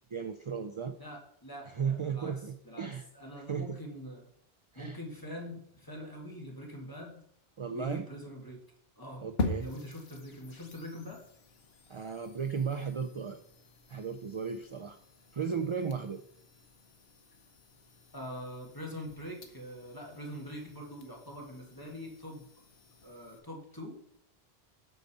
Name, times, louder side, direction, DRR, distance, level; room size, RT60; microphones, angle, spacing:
voice 1, 0.1-1.0 1.7-3.1 3.5-3.8 4.7-5.0 7.6-8.1 9.2-9.7 11.9-13.4 13.9-15.0 15.3-16.2, right 6 dB, 45° right, 9 dB, 0.4 m, -35 dB
voice 2, 1.0-2.4 2.7-4.3 4.8-7.2 7.7-8.6 9.0-9.3 9.6-11.2 18.1-22.5 23.0-24.1, equal, 20° left, -1 dB, 2.2 m, -44 dB
sound 1, 9.4-23.4, left 3 dB, 75° left, 1.3 m, -44 dB
8.6 x 4.0 x 6.9 m, 0.70 s
omnidirectional pair, 1.1 m